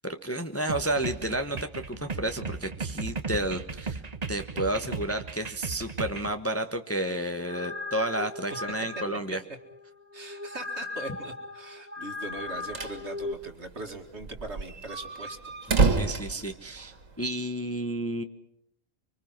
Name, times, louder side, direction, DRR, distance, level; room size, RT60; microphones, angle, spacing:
voice 1, 0.0-4.0 4.3-9.4 15.8-18.2, right 1 dB, 10° left, 7 dB, 1.1 m, -31 dB
sound 1, 0.7-6.3, right 4 dB, 35° right, 1.1 m, -36 dB
sound 2, 7.2-13.3, left 3 dB, 10° right, 1.3 m, -38 dB
voice 2, 10.1-16.0, right 2 dB, 60° right, 4 dB, 2.5 m, -41 dB
sound 3, 12.4-13.0 13.3-13.4 13.6-13.7 14.2-17.2, right 3 dB, 85° right, 2.3 m, -28 dB
25.0 x 24.5 x 5.9 m, 0.73 s
omnidirectional pair, 1.3 m